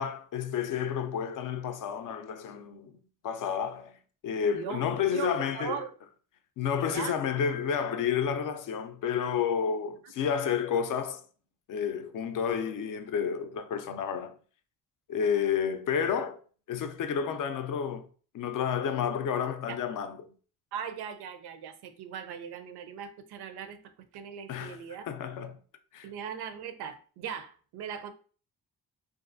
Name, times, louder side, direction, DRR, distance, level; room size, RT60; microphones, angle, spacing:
voice 1, 0.0-3.0 3.2-3.9 4.2-5.8 6.6-11.2 11.7-14.3 15.1-16.4 16.7-18.1 18.3-20.2 24.5-24.8 25.1-25.6 25.9-26.1, left 7 dB, 55° left, 0.5 m, -30 dB
voice 2, 4.5-5.9 6.9-7.2 19.7-19.8 20.7-23.8 24.1-25.0 26.0-28.1, right 8 dB, 85° right, 0.5 m, -39 dB
2.6 x 2.4 x 2.5 m
cardioid pair, 95°, 38 cm